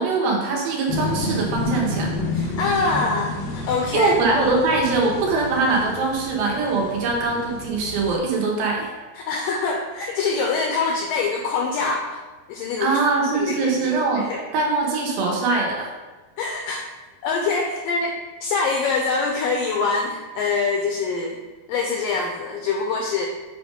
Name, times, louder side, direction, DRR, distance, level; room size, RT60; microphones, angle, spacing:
voice 1, 0.0-2.1 3.9-8.9 12.8-14.3 14.5-15.9, right 3 dB, 75° right, -1 dB, 2.8 m, -22 dB
sound 1, 0.9-8.2, left 3 dB, 75° left, 2.7 m, -30 dB
voice 2, 2.3-4.1 9.1-12.2 12.5-13.0 13.3-14.4 16.4-16.9 17.2-21.4 21.7-23.3, left 4 dB, 90° left, 1 dB, 1.9 m, -24 dB
7.9 x 3.4 x 5.1 m, 1.3 s
omnidirectional pair, 4.6 m